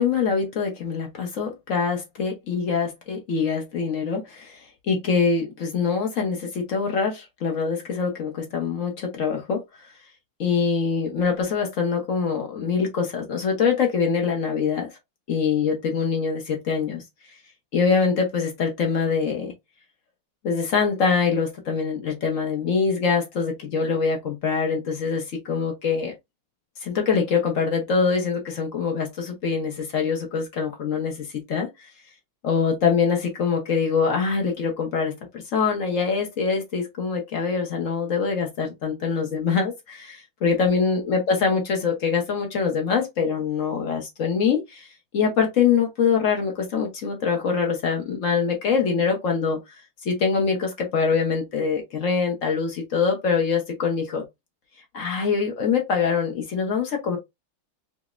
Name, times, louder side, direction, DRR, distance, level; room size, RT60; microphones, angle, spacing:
voice 1, 0.0-9.6 10.4-14.9 15.3-17.0 17.7-19.5 20.4-26.1 26.8-31.7 32.4-44.9 45.1-49.6 50.0-54.2 54.9-57.2, left 5 dB, 65° left, 0.8 m, -24 dB
5.0 x 2.0 x 2.4 m
omnidirectional pair, 2.2 m